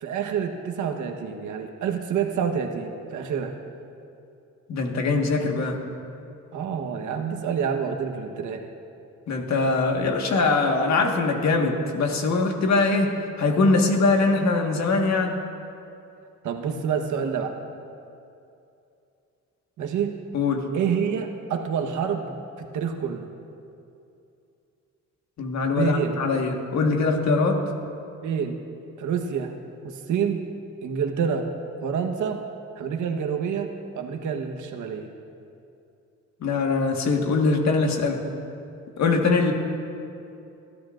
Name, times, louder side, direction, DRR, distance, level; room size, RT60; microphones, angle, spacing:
voice 1, 0.0-3.6 6.5-8.7 16.4-17.5 19.8-20.2 20.7-23.3 25.7-26.2 28.2-28.6 29.0-29.5 29.8-30.4 30.8-31.5 31.8-32.4 32.8-35.1, right 7 dB, 75° right, 4 dB, 1.3 m, -27 dB
voice 2, 4.7-5.8 9.3-15.4 20.3-20.7 25.4-27.6 36.4-38.2 39.0-39.5, left 3 dB, 65° left, 2 dB, 1.7 m, -22 dB
25.0 x 12.5 x 2.6 m, 2.7 s
cardioid pair, 90°, 30 cm